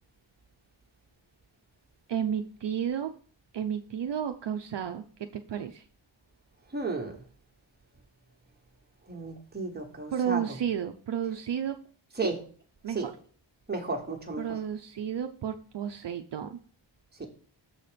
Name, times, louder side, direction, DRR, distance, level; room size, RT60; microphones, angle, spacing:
voice 1, 2.1-3.1 3.5-5.8 10.1-11.8 12.8-13.1 14.4-16.6, right 8 dB, 60° right, 6 dB, 0.6 m, -32 dB
voice 2, 6.7-7.2 9.1-10.4 12.2-12.4 12.9-13.1 13.7-14.4 17.2-17.3, right 3 dB, 20° right, 2 dB, 1.2 m, -33 dB
7.0 x 4.2 x 5.0 m, 0.43 s
wide cardioid pair, 135°, 47 cm